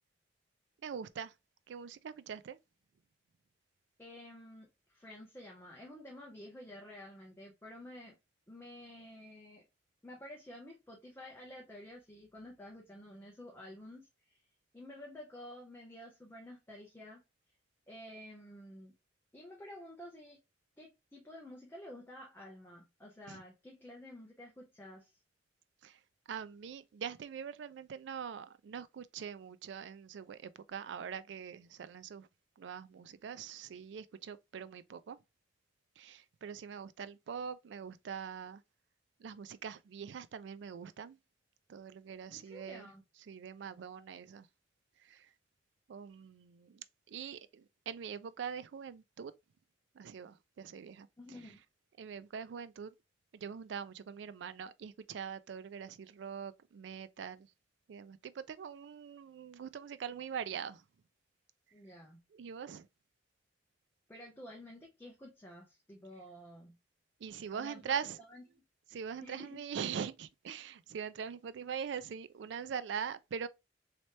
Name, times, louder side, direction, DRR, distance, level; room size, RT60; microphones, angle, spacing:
voice 1, 0.8-1.3 1.7-2.6 23.3-23.4 25.8-26.0 26.3-32.3 32.6-35.2 36.0-38.6 39.2-41.2 41.7-42.9 43.3-44.5 45.0-45.3 45.9-49.3 50.0-51.1 52.0-52.9 53.3-57.5 57.9-60.8 62.3-62.9 67.2-68.2 68.9-73.5, right 7 dB, 70° right, 0.3 m, -43 dB
voice 2, 4.0-8.2 8.5-9.6 10.0-14.4 14.7-17.2 17.9-18.9 19.3-20.4 20.8-25.1 42.3-43.0 51.2-51.6 61.7-62.2 64.1-66.8 67.5-68.0 68.3-68.4 69.2-69.6, left 1 dB, 10° left, 0.8 m, -51 dB
3.1 x 2.9 x 3.0 m
head